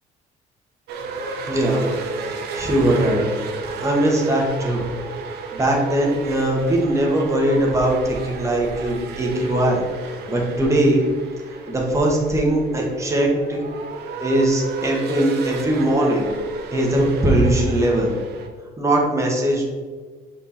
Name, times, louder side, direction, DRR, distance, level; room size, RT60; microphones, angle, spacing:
sound 1, 0.9-18.5, right 3 dB, 75° right, 1.1 m, -33 dB
voice 1, 1.5-1.9 2.2-3.3 3.6-4.8 5.5-9.8 10.3-11.0 11.5-13.6 14.2-16.3 16.7-18.1 18.8-19.7, right 1 dB, 15° right, -2 dB, 1.9 m, -20 dB
6.7 x 4.9 x 4.5 m, 1.5 s
cardioid pair, 110°, 17 cm